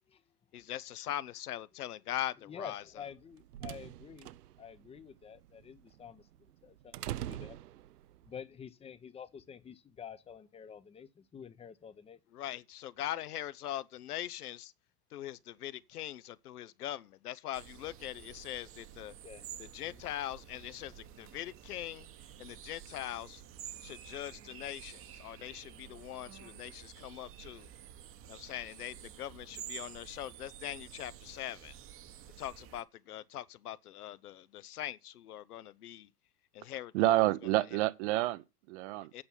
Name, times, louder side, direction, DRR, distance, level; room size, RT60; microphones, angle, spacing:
voice 1, 0.5-3.0 12.3-14.7 15.1-19.1 19.7-22.1 22.4-23.4 23.8-27.7 28.3-31.7 32.4-36.1 36.5-36.9 39.1-39.2, left 12 dB, 75° left, 0.8 m, -41 dB
voice 2, 2.4-6.3 6.6-7.6 8.2-12.2 19.2-19.4 19.9-20.0, left 7 dB, 15° left, 0.7 m, -49 dB
sound 1, 3.0-8.3, right 13 dB, 80° right, 0.6 m, -44 dB
sound 2, 17.5-32.8, right 10 dB, 30° right, 1.0 m, -50 dB
voice 3, 36.9-39.2, right 16 dB, 50° right, 0.8 m, -29 dB
8.7 x 5.6 x 7.1 m
hypercardioid pair, 105°, 46 cm